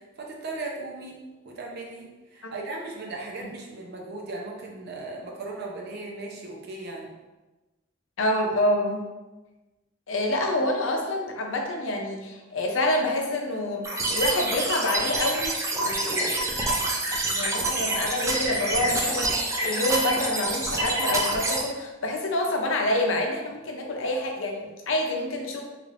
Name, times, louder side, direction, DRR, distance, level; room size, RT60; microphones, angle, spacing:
voice 1, 0.2-1.2 1.4-7.1, right 2 dB, 55° right, -1 dB, 0.6 m, -37 dB
voice 2, 8.2-9.0 10.1-16.6 17.3-25.6, left 1 dB, 75° left, 2 dB, 0.6 m, -27 dB
sound 1, 13.8-21.6, right 2 dB, 15° right, 0.4 m, -27 dB
3.2 x 3.1 x 2.5 m, 1.1 s
head